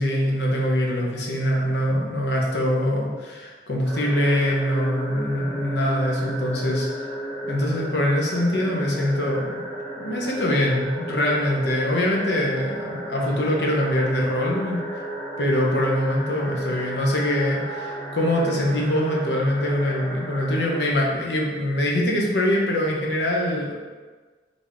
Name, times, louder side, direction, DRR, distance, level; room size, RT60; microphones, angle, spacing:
voice 1, 0.0-6.9 7.5-9.6 10.0-14.8 15.4-23.7, left 1 dB, 75° left, -2 dB, 0.9 m, -23 dB
sound 1, 3.9-20.9, right 1 dB, 10° left, 1.1 m, -33 dB
4.0 x 3.5 x 3.6 m, 1.4 s
head